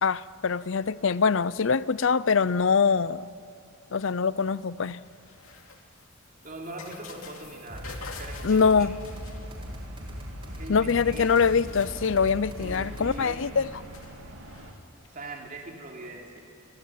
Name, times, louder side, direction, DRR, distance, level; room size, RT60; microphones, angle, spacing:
voice 1, 0.0-3.3 3.9-5.0 8.4-8.9 10.7-13.7, left 5 dB, 60° left, 0.5 m, -23 dB
sound 1, 5.0-9.8 10.9-11.0 11.2-14.8, left 5 dB, 75° left, 2.6 m, -48 dB
voice 2, 6.4-8.9 10.5-11.4 12.6-13.4 15.1-16.4, right 2 dB, 40° right, 3.5 m, -41 dB
sound 2, 6.7-14.7, right 1 dB, 65° right, 3.2 m, -47 dB
sound 3, 7.7-13.2, equal, 25° right, 4.5 m, -39 dB
28.5 x 22.5 x 9.3 m
head